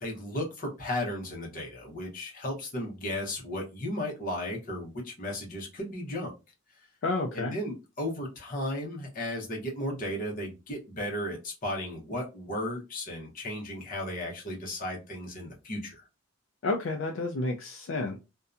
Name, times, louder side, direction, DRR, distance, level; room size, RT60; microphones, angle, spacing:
voice 1, 0.0-6.3 6.8-6.9 7.3-16.0, left 1 dB, 40° left, 0.8 m, -35 dB
voice 2, 7.0-7.5 16.6-18.2, left 2 dB, 65° left, 0.4 m, -30 dB
2.6 x 2.2 x 2.4 m
head